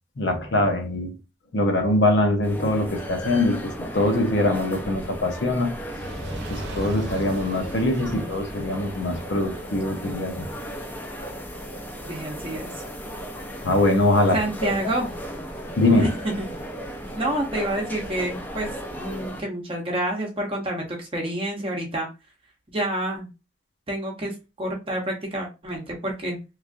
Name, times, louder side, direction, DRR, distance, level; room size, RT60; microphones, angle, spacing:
voice 1, 0.2-1.2 1.5-5.7 6.5-10.5 13.6-14.7 15.8-16.1, left 2 dB, 75° left, 0.7 m, -23 dB
sound 1, 2.4-19.4, equal, 10° left, 0.5 m, -36 dB
Fire, 5.8-12.1 12.8-12.9, right 1 dB, 70° right, 0.7 m, -39 dB
sound 2, 6.0-19.3, right 1 dB, 50° left, 0.9 m, -43 dB
voice 2, 12.1-12.8 14.3-15.1 15.9-16.5 17.1-18.7 19.0-22.1 22.7-23.3 23.9-26.4, right 1 dB, 30° right, 0.8 m, -28 dB
3.1 x 2.4 x 2.5 m
head